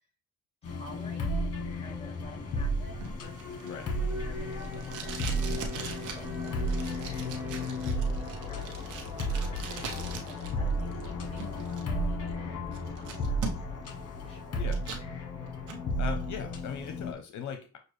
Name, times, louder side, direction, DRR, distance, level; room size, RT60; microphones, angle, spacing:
sound 1, 0.6-17.1, equal, 55° left, 1.2 m, -33 dB
voice 1, 0.6-14.7, left 2 dB, 20° left, 1 dB, 2.1 m, -52 dB
Alarm, 1.6-13.6, equal, 5° right, 1.0 m, -44 dB
Packing tape duct tape, 3.0-10.5 10.8-11.8 12.3-12.4 12.7-13.9 14.2-15.1 15.5-15.8, right 5 dB, 85° right, 1.0 m, -41 dB
voice 2, 16.0-17.8, left 7 dB, 70° left, 6 dB, 0.7 m, -38 dB
6.4 x 2.4 x 3.2 m, 0.34 s
cardioid pair, 90°, 30 cm